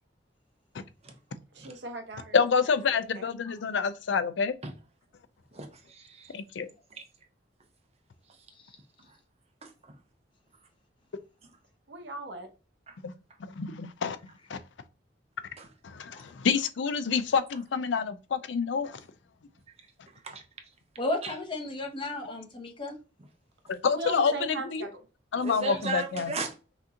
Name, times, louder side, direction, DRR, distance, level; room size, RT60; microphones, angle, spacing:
voice 1, 1.5-2.4 2.9-3.3 11.9-12.5 23.9-25.0, right 2 dB, 65° right, 0.9 m, -38 dB
voice 2, 2.3-4.5 6.3-6.7 13.0-13.1 13.6-14.2 14.5-14.6 15.8-19.0 22.2-22.3 23.7-24.9 25.3-26.3, left 5 dB, 70° left, 0.4 m, -27 dB
voice 3, 5.5-6.4 6.9-7.0 9.0-9.2 9.6-10.0 12.9-13.0 15.6-15.7 20.1-20.4 21.2-21.3 24.2-24.3 25.3-26.5, right 4 dB, 35° right, 0.7 m, -37 dB
voice 4, 21.0-22.9 25.5-25.8, left 2 dB, 25° left, 0.9 m, -34 dB
5.8 x 2.6 x 2.8 m
head